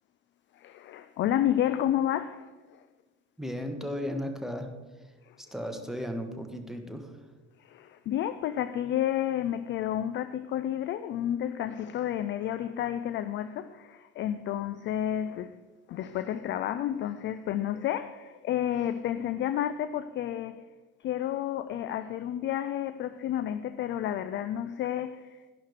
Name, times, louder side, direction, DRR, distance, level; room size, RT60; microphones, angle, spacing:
voice 1, 0.5-2.8 5.3-5.4 7.6-15.6 15.9-20.6 21.0-25.5, left 11 dB, 30° left, 0.4 m, -31 dB
voice 2, 3.4-4.7 5.0-5.1 5.4-7.2, equal, ahead, 1.4 m, -35 dB
11.5 x 11.0 x 4.7 m
figure-of-eight pair, 60°, 41 cm